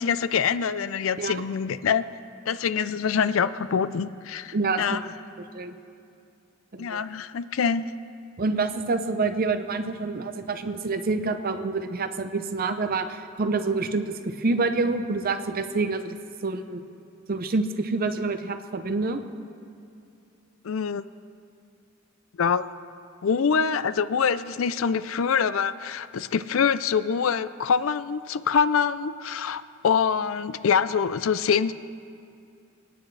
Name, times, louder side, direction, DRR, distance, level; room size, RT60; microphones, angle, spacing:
voice 1, 0.0-2.0 2.5-5.0 6.8-7.9 20.6-21.0 22.4-22.7 23.2-31.7, left 6 dB, 70° left, 14 dB, 0.4 m, -25 dB
voice 2, 4.5-5.1 5.5-5.8 6.7-7.0 8.4-16.2 16.4-16.8 17.3-19.2, right 3 dB, 45° right, 9 dB, 0.7 m, -27 dB
29.5 x 9.9 x 3.3 m, 2.6 s
head